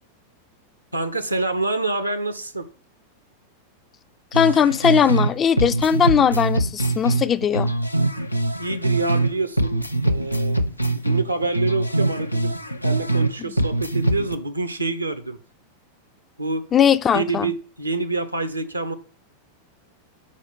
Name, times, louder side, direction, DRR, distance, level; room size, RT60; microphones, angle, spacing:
voice 1, 0.9-2.7 8.6-10.6 10.9-12.5 12.8-15.4 16.4-16.6 17.1-18.9, right 3 dB, 85° right, 0.8 m, -26 dB
sound 1, 4.3-5.3 5.6-9.3 9.6-13.3 13.6-14.3, right 2 dB, 85° left, 0.5 m, -23 dB
voice 2, 4.3-7.7 13.4-13.5 16.7-17.5, left 8 dB, 25° left, 0.4 m, -19 dB
6.4 x 4.8 x 5.2 m
figure-of-eight pair, 90°, 0 cm